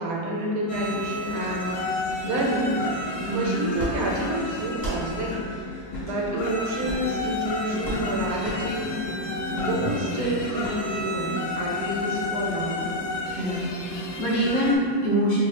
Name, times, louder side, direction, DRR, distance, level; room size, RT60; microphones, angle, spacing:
voice 1, 0.0-1.7 2.2-2.8 3.3-5.4 6.0-8.9 9.6-12.8, right 1 dB, 70° right, -3 dB, 1.1 m, -28 dB
sound 1, 0.7-14.8, left 2 dB, 80° left, 1.1 m, -31 dB
voice 2, 3.2-3.7 9.5-9.9 13.3-15.4, equal, 35° left, -9 dB, 0.4 m, -25 dB
sound 2, 3.7-3.9 4.7-5.0 5.9-6.1 6.8-7.1 7.8-8.0 8.4-8.6 9.5-9.7 10.6-10.8, right 1 dB, 5° left, 1.1 m, -33 dB
3.3 x 2.6 x 3.2 m, 2.1 s
omnidirectional pair, 1.8 m